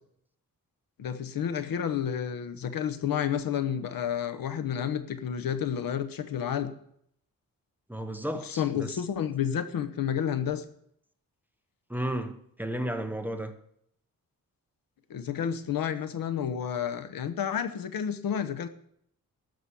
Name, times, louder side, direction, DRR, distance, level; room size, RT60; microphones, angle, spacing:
voice 1, 1.0-6.7 8.4-10.6 15.1-18.7, left 8 dB, 80° left, 1.1 m, -30 dB
voice 2, 7.9-9.0 11.9-13.5, right 1 dB, 5° right, 1.0 m, -33 dB
13.0 x 6.1 x 8.5 m
wide cardioid pair, 120°, 34 cm